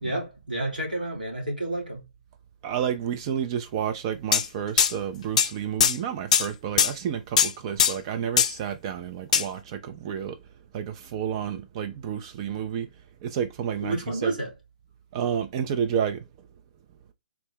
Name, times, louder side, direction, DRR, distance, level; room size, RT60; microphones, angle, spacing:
voice 1, 0.0-2.1 13.8-14.5, right 1 dB, 80° right, 1.5 m, -30 dB
voice 2, 2.6-10.4 10.7-12.9 13.2-14.3 15.1-16.2, right 8 dB, 35° right, 0.3 m, -30 dB
sound 1, 4.3-4.5 4.8-4.9 5.4-5.5 5.8-6.0 6.3-6.5 6.8-6.9 7.4-7.5 7.8-8.0 8.4-8.6 9.3-9.5, left 8 dB, 50° left, 0.4 m, -20 dB
3.5 x 2.0 x 3.6 m
figure-of-eight pair, 125°, 5 cm